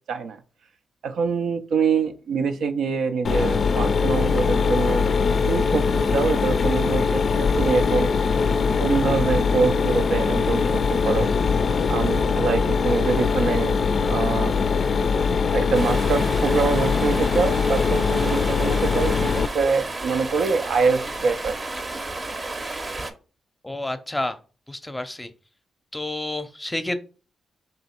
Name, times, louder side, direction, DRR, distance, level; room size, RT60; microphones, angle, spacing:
voice 1, 0.1-0.4 1.0-5.1 5.5-8.1 8.8-11.3 11.9-14.5 15.5-21.6, right 5 dB, 75° right, 7 dB, 0.4 m, -25 dB
Mechanisms, 3.2-19.5, left 5 dB, 60° left, 0.4 m, -22 dB
Stream, 15.7-23.1, right 2 dB, 40° right, 0.7 m, -32 dB
voice 2, 23.6-24.4 24.7-25.3 25.9-27.0, left 1 dB, 15° left, 10 dB, 0.6 m, -29 dB
3.0 x 2.8 x 4.3 m, 0.35 s
supercardioid pair, 50°, 0 cm